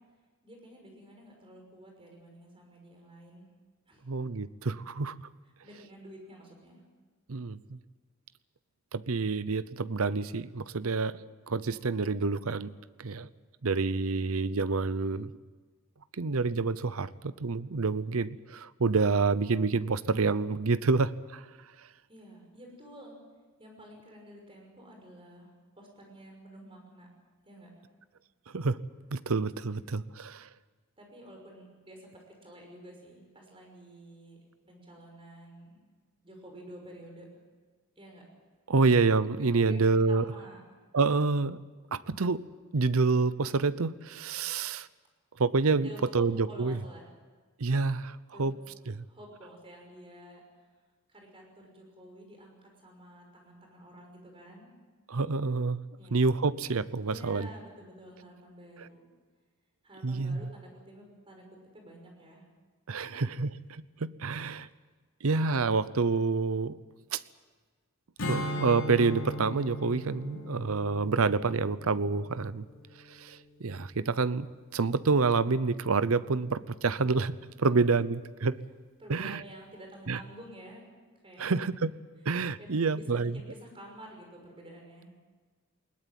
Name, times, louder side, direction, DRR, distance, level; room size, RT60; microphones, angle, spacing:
voice 1, 0.4-3.5 3.9-4.1 5.6-6.8 22.1-23.2 23.6-25.5 25.8-27.1 27.4-27.7 31.0-34.4 34.7-35.8 36.2-37.3 38.0-38.2 38.8-38.9 39.5-40.6 45.8-47.1 48.3-48.5 49.0-50.4 51.1-54.7 56.0-56.5 57.0-59.1 59.8-61.4 61.7-62.4 63.0-63.2 64.6-64.7 77.6-77.8 79.0-80.8 81.2-81.5 82.6-85.1, right 1 dB, 25° right, 1 dB, 5.9 m, -50 dB
voice 2, 4.1-5.1 7.3-7.8 8.9-11.2 11.5-12.7 13.0-13.3 13.6-15.3 16.2-21.4 28.5-28.8 29.1-30.5 38.7-40.3 40.9-41.6 41.9-42.4 42.7-44.9 45.4-46.8 47.6-48.5 48.9-49.0 55.1-55.8 56.1-57.5 60.0-60.5 62.9-64.7 65.2-66.8 67.1-67.2 68.2-72.7 73.1-74.5 74.7-77.3 77.6-78.6 79.1-79.4 80.1-80.2 81.4-81.9 82.3-83.3, right 4 dB, 75° right, 16 dB, 0.7 m, -28 dB
Strum, 68.2-73.5, equal, 65° left, 3.2 m, -38 dB
20.5 x 18.5 x 9.3 m, 1.4 s
head